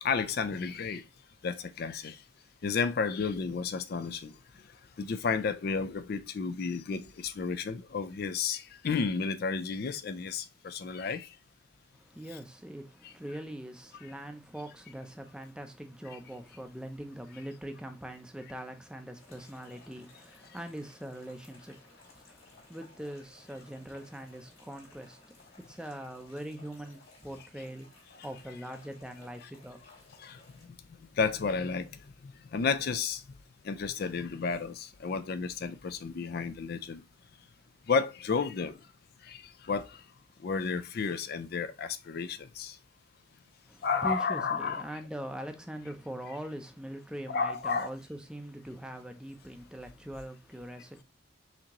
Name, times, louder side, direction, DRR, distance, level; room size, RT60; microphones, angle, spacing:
voice 1, 0.0-1.0 1.4-2.2 2.6-4.3 5.0-11.3 30.2-30.7 31.2-31.9 32.2-33.2 33.6-37.0 37.9-38.8 39.2-40.0 40.4-42.8 43.8-44.8 47.3-47.9, left 5 dB, 50° left, 0.4 m, -32 dB
voice 2, 11.9-29.8 43.7-51.0, right 1 dB, 5° right, 0.5 m, -42 dB
sound 1, 19.1-30.7, left 3 dB, 80° left, 3.0 m, -58 dB
5.9 x 2.9 x 2.9 m
head